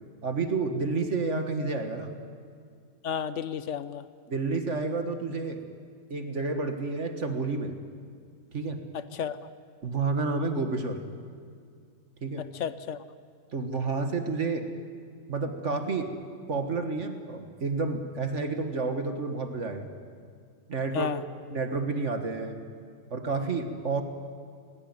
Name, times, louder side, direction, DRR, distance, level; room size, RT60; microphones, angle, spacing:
voice 1, 0.2-2.1 4.3-5.6 6.1-7.8 8.5-8.8 9.8-11.0 12.2-12.4 13.5-14.7 15.3-16.1 16.5-19.9 20.7-21.1 21.5-22.6 23.1-24.0, right 3 dB, 45° right, 6 dB, 1.7 m, -30 dB
voice 2, 3.0-4.0 8.9-9.5 12.4-13.0 20.9-21.2, left 8 dB, 55° left, 13 dB, 0.9 m, -32 dB
19.5 x 18.0 x 9.5 m, 2.2 s
omnidirectional pair, 1.9 m